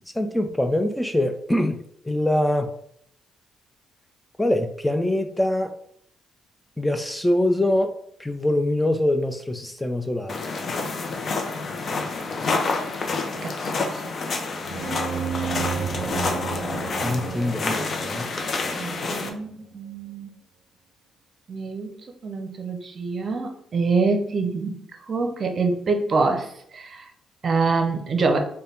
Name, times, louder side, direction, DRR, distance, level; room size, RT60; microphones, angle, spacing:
voice 1, 0.1-1.8 2.0-2.7 4.4-5.7 6.8-7.9 8.2-10.4 17.0-18.3, left 1 dB, 5° left, 6 dB, 0.3 m, -23 dB
sound 1, 10.3-19.3, left 3 dB, 50° left, 0.6 m, -28 dB
voice 2, 13.4-14.1 18.8-20.3 21.5-21.9 22.2-24.8 25.1-27.1 27.4-28.4, right 4 dB, 45° right, 4 dB, 0.6 m, -25 dB
sound 2, 14.6-19.2, right 7 dB, 85° right, 0.3 m, -32 dB
3.3 x 2.2 x 4.1 m, 0.69 s
cardioid pair, 90°, 0 cm